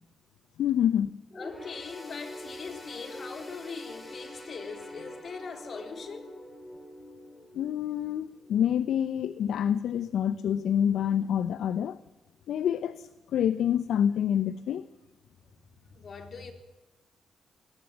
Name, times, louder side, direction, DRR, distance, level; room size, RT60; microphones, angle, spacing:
voice 1, 0.6-1.1 7.5-12.0 12.5-14.9, left 9 dB, 75° left, 15 dB, 0.7 m, -27 dB
sound 1, 1.3-9.0 9.4-9.6 10.5-10.6, left 1 dB, 25° left, 7.9 m, -45 dB
voice 2, 1.4-6.3 15.9-16.5, left 5 dB, 55° left, 6 dB, 3.8 m, -41 dB
19.5 x 18.0 x 8.0 m, 1.1 s
supercardioid pair, 50°, 0 cm